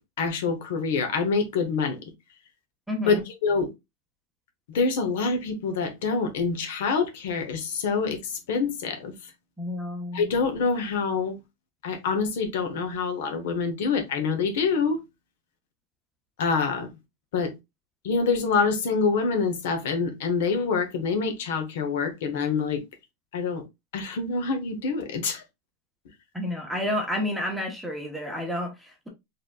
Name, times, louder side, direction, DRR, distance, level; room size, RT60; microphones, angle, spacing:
voice 1, 0.2-2.0 3.1-3.7 4.7-8.2 8.5-9.1 10.1-11.4 11.8-15.0 16.4-16.9 17.3-17.5 18.0-22.8 23.3-23.6 23.9-25.4, left 4 dB, 70° left, 1.4 m, -26 dB
voice 2, 2.9-3.2 9.6-10.3 26.3-29.1, left 1 dB, ahead, 0.9 m, -30 dB
4.4 x 3.6 x 2.3 m
supercardioid pair, 165°, 0 cm